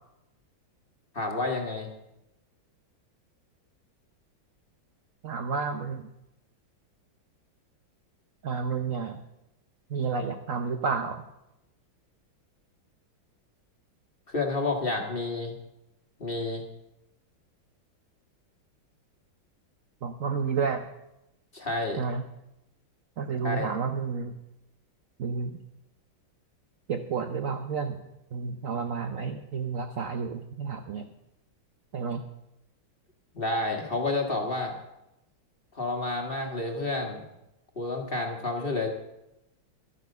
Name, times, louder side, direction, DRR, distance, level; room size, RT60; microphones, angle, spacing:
voice 1, 1.1-1.9 14.3-15.6 16.2-16.6 21.5-22.0 23.4-23.7 33.3-34.8 35.7-37.2 37.8-38.9, left 2 dB, 30° left, 2 dB, 1.6 m, -30 dB
voice 2, 5.2-6.1 8.4-9.2 9.9-11.2 20.0-20.9 22.0-22.2 23.2-24.3 25.2-25.6 26.9-28.0 28.3-31.1 31.9-32.2, right 5 dB, 60° right, 7 dB, 0.8 m, -31 dB
12.5 x 9.4 x 6.7 m, 0.89 s
omnidirectional pair, 2.2 m